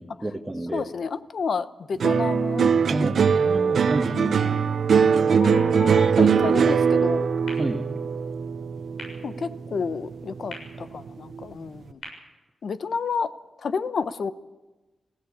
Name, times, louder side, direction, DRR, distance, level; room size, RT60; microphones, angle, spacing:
voice 1, 0.0-0.8 2.9-4.2 7.5-7.9, right 1 dB, 15° right, -1 dB, 1.6 m, -30 dB
voice 2, 0.7-2.7 4.1-4.6 5.3-7.3 9.2-12.0 12.6-13.3 13.6-14.3, left 5 dB, 70° left, 13 dB, 0.9 m, -30 dB
sound 1, 2.0-10.5 10.8-11.4, right 6 dB, 75° right, 0.8 m, -21 dB
sound 2, 7.4-13.4, left 2 dB, 90° left, 7.1 m, -47 dB
21.0 x 16.0 x 8.6 m, 1.1 s
cardioid pair, 75°, 0 cm